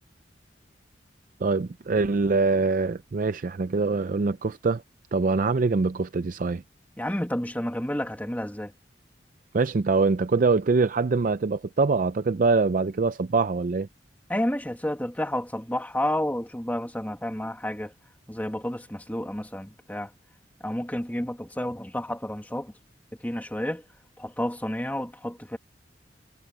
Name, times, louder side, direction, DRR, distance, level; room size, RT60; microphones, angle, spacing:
voice 1, 1.4-4.8 5.1-6.6 9.5-13.9, right 4 dB, 50° right, 0.4 m, -24 dB
voice 2, 7.0-8.7 14.3-17.9 18.3-20.1 20.6-22.7 23.2-23.8 24.2-25.6, left 1 dB, 10° left, 2.0 m, -30 dB
head